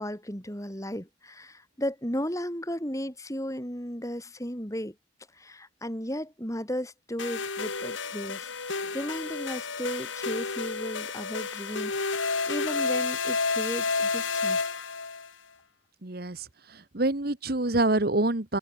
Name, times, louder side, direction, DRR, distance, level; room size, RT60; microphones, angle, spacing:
voice 1, 0.0-4.9 5.4-8.5 8.9-14.7, equal, 15° left, 6.1 m, -35 dB
sound 1, 7.2-15.3, left 4 dB, 85° left, 3.7 m, -30 dB
voice 2, 16.0-16.5 16.9-18.6, right 2 dB, 55° right, 1.5 m, -26 dB
head